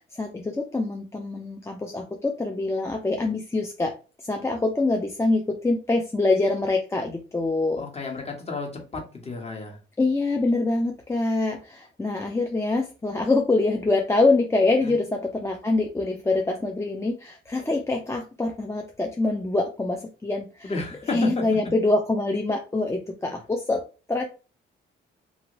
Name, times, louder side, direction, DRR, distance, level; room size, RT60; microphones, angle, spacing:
voice 1, 0.0-3.9 4.2-7.8 10.0-20.7 21.1-23.8 24.1-24.2, left 2 dB, 15° left, 1 dB, 0.5 m, -25 dB
voice 2, 7.8-9.8 14.8-15.0 20.6-21.4, left 3 dB, 30° left, 1 dB, 1.3 m, -32 dB
2.7 x 2.6 x 3.0 m, 0.33 s
cardioid pair, 90°, 20 cm